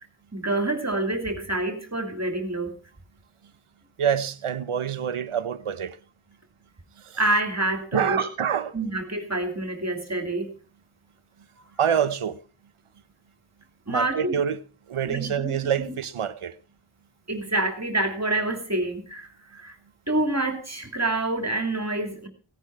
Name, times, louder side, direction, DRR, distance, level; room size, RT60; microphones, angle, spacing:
voice 1, 0.3-2.8 7.2-8.3 8.7-10.5 13.9-14.4 15.0-15.9 17.3-19.8 20.1-22.3, right 2 dB, 30° right, 2.9 m, -27 dB
voice 2, 4.0-6.0 7.0-7.2 7.9-8.7 11.8-12.4 13.9-14.6 14.9-16.5, right 8 dB, 80° right, 0.9 m, -26 dB
17.0 x 10.0 x 4.7 m
wide cardioid pair, 45°, 50 cm